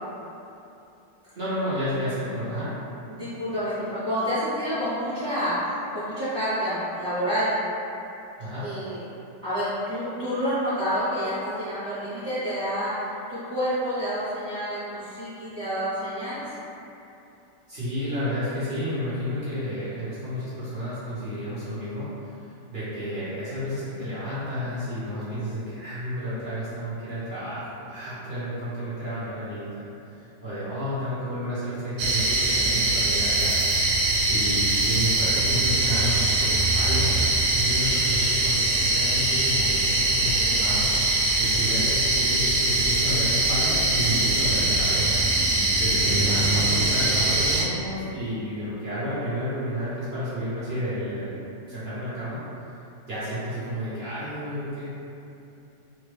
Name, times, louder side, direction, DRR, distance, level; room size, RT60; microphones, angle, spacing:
voice 1, 1.3-2.7 8.4-8.7 17.7-22.4 22.7-33.6 33.9-45.2 45.8-51.4 51.7-52.4 53.1-54.9, equal, 50° right, -12 dB, 0.8 m, -31 dB
voice 2, 3.1-5.5 5.9-7.5 8.6-9.0 9.4-12.9 13.3-16.5, equal, 30° right, -16 dB, 1.0 m, -28 dB
sound 1, 32.0-47.6, right 2 dB, 75° right, 1.2 m, -22 dB
3.3 x 2.3 x 3.2 m, 2.8 s
omnidirectional pair, 1.9 m